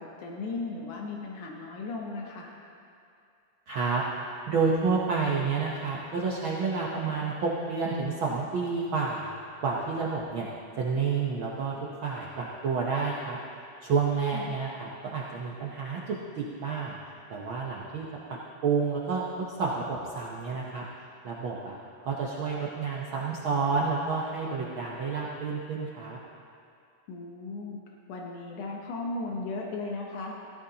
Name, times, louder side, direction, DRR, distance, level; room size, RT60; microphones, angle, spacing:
voice 1, 0.0-2.5 14.3-14.6 27.1-27.8 28.1-30.4, left 3 dB, 85° left, -1 dB, 2.5 m, -36 dB
voice 2, 3.7-4.0 4.5-9.3 9.6-10.5 10.8-11.7 12.0-13.4 13.8-16.9 17.3-18.1 18.6-20.8 21.2-21.8 22.0-26.2, right 5 dB, 70° right, -4 dB, 1.2 m, -29 dB
16.5 x 15.0 x 2.9 m, 2.5 s
omnidirectional pair, 3.4 m